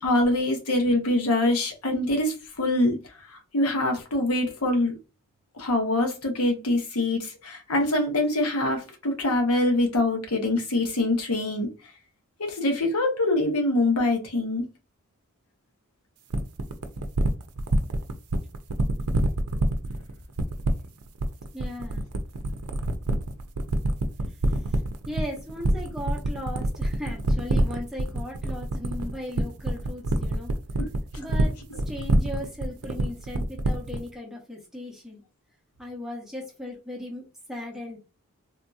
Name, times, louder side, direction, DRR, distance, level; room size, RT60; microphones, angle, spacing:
voice 1, 0.0-3.0 3.3-4.9 5.6-11.7 12.4-14.6 30.8-30.9, left 1 dB, 85° left, 1.0 m, -24 dB
sound 1, 16.3-34.1, right 2 dB, 85° right, 0.5 m, -25 dB
voice 2, 21.5-22.0 24.3-30.5 31.2-31.5 31.9-35.2 35.8-37.2 37.5-38.0, left 1 dB, ahead, 0.9 m, -37 dB
3.5 x 2.7 x 2.3 m
head